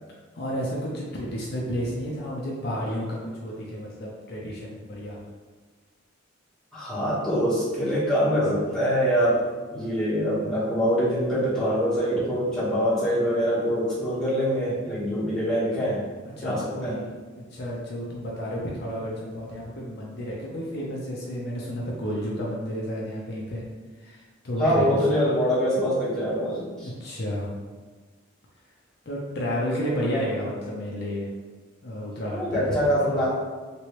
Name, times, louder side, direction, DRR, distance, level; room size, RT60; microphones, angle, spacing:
voice 1, 0.3-5.2 16.4-17.1 17.5-23.6 24.0-25.0 26.8-27.5 29.1-31.3 31.8-33.2, equal, 55° left, -4 dB, 0.6 m, -31 dB
voice 2, 6.7-9.4 9.7-16.0 16.4-16.9 24.6-26.9 32.3-33.3, equal, 5° left, -12 dB, 1.4 m, -24 dB
3.0 x 2.9 x 3.0 m, 1.4 s
head